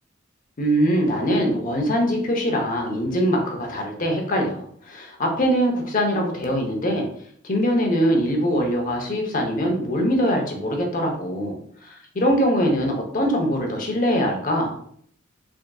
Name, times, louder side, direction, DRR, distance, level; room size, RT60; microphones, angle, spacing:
voice 1, 0.6-7.1 7.4-14.8, equal, 45° left, 1 dB, 0.8 m, -22 dB
3.9 x 3.6 x 2.3 m, 0.64 s
head